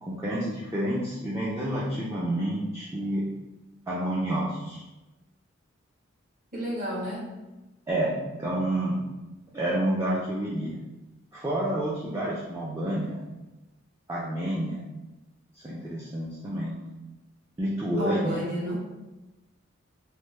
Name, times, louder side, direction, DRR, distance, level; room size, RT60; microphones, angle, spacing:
voice 1, 0.0-3.2 3.9-4.8 7.9-9.0 9.5-10.8 11.3-13.2 14.1-14.8 15.5-16.8 17.6-18.4, right 1 dB, 15° right, -6 dB, 0.4 m, -29 dB
voice 2, 6.5-7.3 18.0-18.7, equal, 40° right, -7 dB, 1.2 m, -31 dB
3.2 x 2.1 x 3.2 m, 1.0 s
head